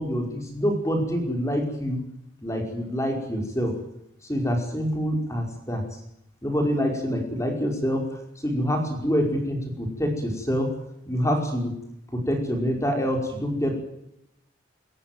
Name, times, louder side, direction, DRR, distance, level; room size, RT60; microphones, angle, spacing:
voice 1, 0.0-2.0 2.4-3.7 4.3-5.8 6.4-8.0 8.4-10.7 11.1-11.7 12.3-13.8, equal, 15° left, 3 dB, 5.2 m, -26 dB
27.5 x 14.5 x 9.4 m, 0.81 s
head